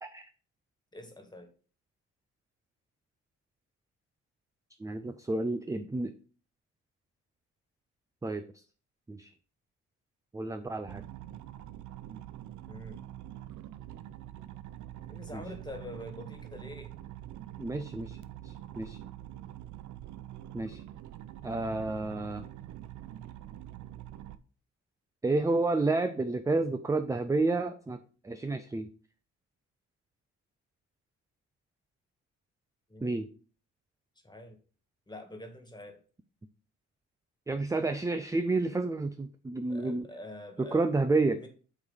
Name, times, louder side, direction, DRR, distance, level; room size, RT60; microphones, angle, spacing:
voice 1, 0.9-1.5 12.7-13.0 15.1-16.9 32.9-33.2 34.2-34.6 35.1-36.0 39.7-41.0 41.3-41.5, left 1 dB, 15° left, 6 dB, 1.8 m, -45 dB
voice 2, 4.8-6.1 8.2-8.5 9.1-9.3 10.3-11.0 15.3-15.4 17.6-18.2 18.4-19.0 20.5-20.8 21.4-22.5 25.2-28.0 28.2-28.9 33.0-33.3 37.5-40.1 40.6-41.4, right 3 dB, 10° right, 9 dB, 0.5 m, -30 dB
sound 1, 10.9-24.4, right 12 dB, 75° right, 0.6 m, -45 dB
8.3 x 3.2 x 5.6 m, 0.39 s
cardioid pair, 90°, 30 cm